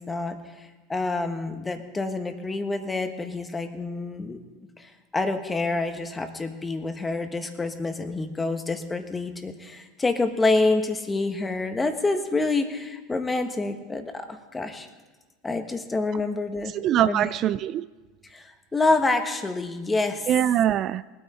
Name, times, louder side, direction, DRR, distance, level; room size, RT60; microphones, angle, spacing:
voice 1, 0.0-4.4 4.8-14.9 15.4-16.7 17.1-17.3 18.3-20.3, left 3 dB, 15° left, 6 dB, 1.4 m, -27 dB
voice 2, 16.6-17.8 20.3-21.0, right 11 dB, 45° right, 15 dB, 0.3 m, -23 dB
20.0 x 9.2 x 4.3 m, 1.2 s
hypercardioid pair, 100°, 0 cm